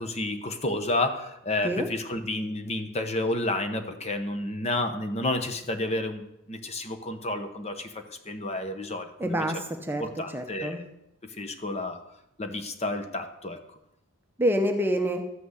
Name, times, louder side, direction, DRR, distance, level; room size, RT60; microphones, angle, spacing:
voice 1, 0.0-9.4 10.0-10.8 11.2-12.0 12.4-13.6, left 2 dB, 30° left, 7 dB, 0.9 m, -31 dB
voice 2, 9.2-10.0 10.3-10.8 14.4-15.2, equal, 10° right, 4 dB, 0.8 m, -27 dB
13.0 x 6.0 x 8.1 m, 0.85 s
head